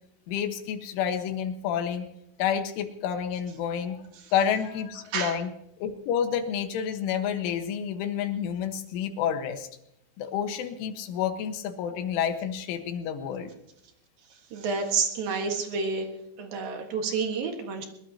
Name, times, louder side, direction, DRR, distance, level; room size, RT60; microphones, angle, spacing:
voice 1, 0.3-2.1 2.4-4.1 4.3-5.5 5.8-9.7 10.2-13.5, left 8 dB, 75° left, 6 dB, 3.7 m, -29 dB
voice 2, 14.5-16.1 16.4-17.8, right 5 dB, 60° right, 3 dB, 2.7 m, -29 dB
22.5 x 21.0 x 2.9 m, 0.77 s
omnidirectional pair, 5.9 m